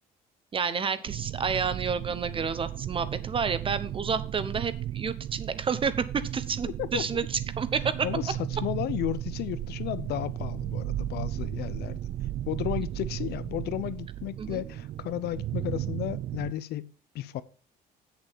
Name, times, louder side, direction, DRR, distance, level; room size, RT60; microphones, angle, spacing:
voice 1, 0.5-7.9 14.4-14.6, right 6 dB, 30° right, 1.0 m, -30 dB
sound 1, 1.1-16.5, right 12 dB, 50° right, 0.4 m, -35 dB
voice 2, 8.0-12.0 12.5-16.9 17.1-17.4, left 13 dB, 70° left, 0.8 m, -33 dB
8.0 x 6.9 x 5.7 m
cardioid pair, 110°, 17 cm